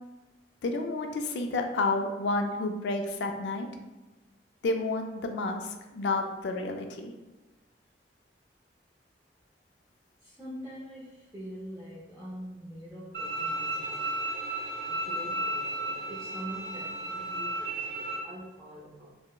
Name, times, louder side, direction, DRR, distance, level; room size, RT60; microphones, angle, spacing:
voice 1, 0.6-3.7 4.6-7.1, left 2 dB, 70° left, 4 dB, 0.3 m, -30 dB
voice 2, 10.2-14.2 14.9-19.2, equal, 15° right, -8 dB, 0.5 m, -44 dB
Bowed string instrument, 13.1-18.2, right 1 dB, 55° right, 1.1 m, -33 dB
4.2 x 2.0 x 2.3 m, 1.1 s
head